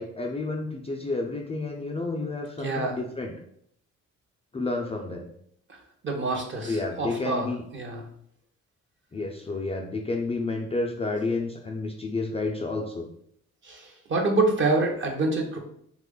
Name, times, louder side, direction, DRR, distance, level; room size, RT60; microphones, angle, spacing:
voice 1, 0.0-3.3 4.5-5.3 6.6-7.6 9.1-13.1, left 3 dB, 20° left, 1 dB, 0.4 m, -30 dB
voice 2, 2.6-3.0 5.7-5.8 6.0-7.5 7.7-8.0 13.6-15.6, right 3 dB, 40° right, 2 dB, 0.7 m, -26 dB
2.9 x 2.4 x 3.6 m, 0.68 s
cardioid pair, 90°, 30 cm